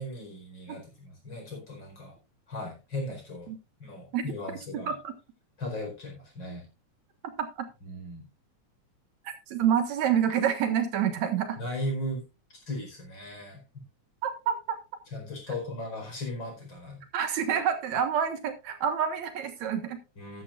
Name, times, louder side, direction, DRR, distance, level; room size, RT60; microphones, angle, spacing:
voice 1, 0.0-2.2 2.5-3.5 3.8-5.0 5.6-6.7 7.8-8.3 11.6-12.2 12.7-13.6 15.1-17.0 20.2-20.4, left 1 dB, 40° left, 1 dB, 5.2 m, -37 dB
voice 2, 7.2-7.7 9.2-11.6 14.2-14.8 17.1-20.0, right 8 dB, 75° right, 7 dB, 2.7 m, -28 dB
13.0 x 11.5 x 2.5 m, 0.27 s
omnidirectional pair, 3.3 m